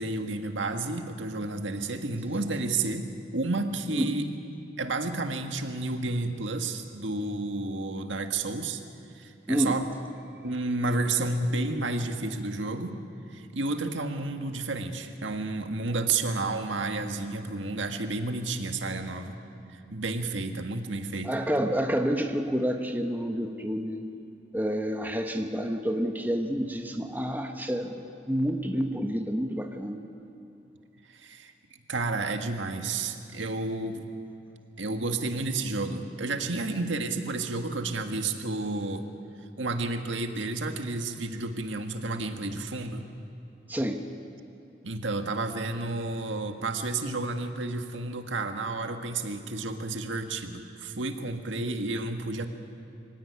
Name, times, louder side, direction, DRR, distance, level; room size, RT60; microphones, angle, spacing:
voice 1, 0.0-4.3 4.8-8.8 9.1-9.9 10.4-13.0 13.3-19.3 19.7-21.4 31.1-31.5 31.9-34.0 34.8-39.1 39.6-43.0 44.8-52.5, right 2 dB, 85° right, 6 dB, 1.8 m, -31 dB
voice 2, 9.5-9.8 21.2-24.0 24.5-27.9 28.3-30.0 43.7-44.0, equal, 10° right, 4 dB, 1.2 m, -28 dB
24.5 x 17.0 x 9.7 m, 2.7 s
head